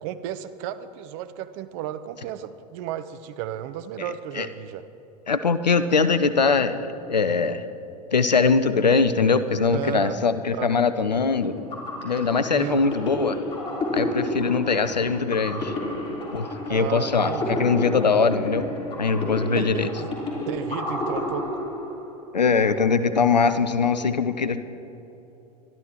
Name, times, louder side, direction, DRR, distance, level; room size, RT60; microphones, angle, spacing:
voice 1, 0.0-4.9 9.7-10.2 10.5-10.7 12.5-12.8 16.7-17.6 19.6-20.1 20.5-21.5, right 11 dB, 45° right, 13 dB, 0.7 m, -33 dB
voice 2, 5.3-6.8 7.1-7.6 8.1-11.5 12.0-13.4 13.9-15.7 16.3-18.7 19.0-19.9 22.3-24.6, left 5 dB, 90° left, 13 dB, 0.7 m, -22 dB
sound 1, 11.4-22.2, left 1 dB, 25° left, 3.7 m, -31 dB
23.5 x 12.5 x 3.0 m, 3.0 s
figure-of-eight pair, 90°, 21 cm